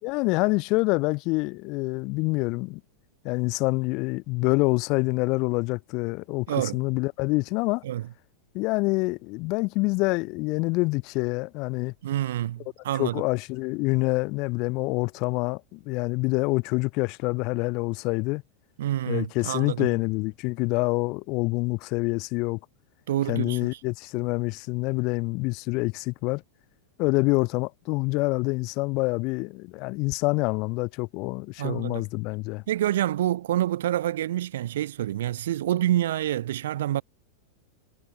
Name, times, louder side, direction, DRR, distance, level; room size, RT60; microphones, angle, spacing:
voice 1, 0.0-2.8 3.2-7.8 8.5-11.9 13.0-18.4 19.1-22.6 23.3-26.4 27.0-32.6, left 26 dB, 40° left, 3.2 m, -26 dB
voice 2, 6.5-6.8 7.8-8.1 12.0-13.2 18.8-19.9 23.1-23.8 31.6-32.0 32.7-37.0, right 13 dB, 60° right, 3.1 m, -27 dB
figure-of-eight pair, 90°, 0 cm